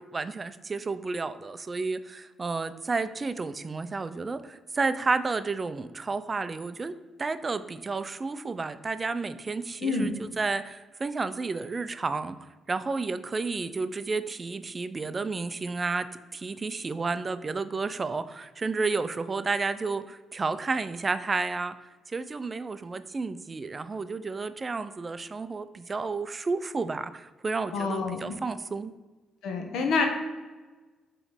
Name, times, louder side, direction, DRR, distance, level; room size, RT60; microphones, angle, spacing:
voice 1, 0.0-12.4 12.7-21.8 22.1-28.9, right 4 dB, 30° right, 12 dB, 0.3 m, -31 dB
voice 2, 9.8-10.1 27.7-28.4 29.4-30.1, left 4 dB, 80° left, 4 dB, 1.0 m, -27 dB
7.1 x 3.1 x 5.0 m, 1.3 s
cardioid pair, 90°, 0 cm